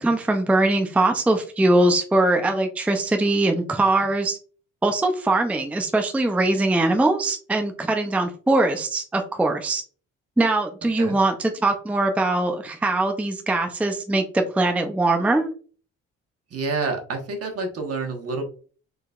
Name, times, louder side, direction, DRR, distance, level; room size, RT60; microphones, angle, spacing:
voice 1, 0.0-4.4 4.8-9.8 10.4-15.5, right 2 dB, 5° right, 5 dB, 0.5 m, -21 dB
voice 2, 16.5-18.4, right 3 dB, 50° right, 3 dB, 1.2 m, -28 dB
3.9 x 3.8 x 2.4 m, 0.40 s
cardioid pair, 90°, 30 cm